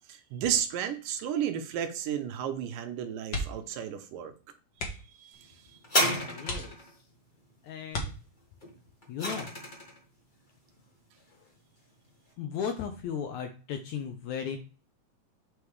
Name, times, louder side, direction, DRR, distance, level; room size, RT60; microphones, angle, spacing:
voice 1, 0.1-4.3 5.2-5.5, right 9 dB, 75° right, 7 dB, 2.3 m, -33 dB
sound 1, 3.3-3.8 4.1-4.3 4.7-5.2 5.8-5.9 6.4-7.2 7.9-8.7 10.2-10.5 10.9-11.0, left 1 dB, 55° left, 1.3 m, -36 dB
sound 2, 5.8-6.9 8.6-10.0 10.8-10.9, left 1 dB, 35° left, 0.7 m, -30 dB
voice 2, 6.2-6.8 7.6-8.1 9.1-9.5 12.4-14.6, left 7 dB, 75° left, 6 dB, 1.8 m, -36 dB
7.9 x 5.1 x 3.2 m, 0.36 s
omnidirectional pair, 4.0 m